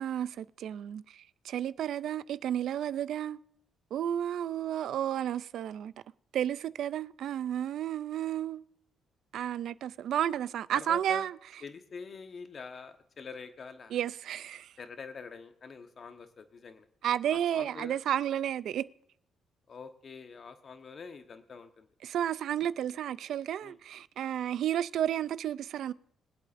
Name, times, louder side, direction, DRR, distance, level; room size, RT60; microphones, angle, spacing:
voice 1, 0.0-3.4 3.9-5.9 6.3-8.6 9.3-11.4 13.9-14.7 17.0-18.9 22.0-25.9, right 10 dB, 75° right, 0.4 m, -32 dB
voice 2, 10.7-11.3 11.6-13.9 14.8-16.9 17.3-17.9 19.7-21.9 23.6-23.8, left 5 dB, 45° left, 1.1 m, -45 dB
22.5 x 8.3 x 2.6 m
cardioid pair, 90°, 0 cm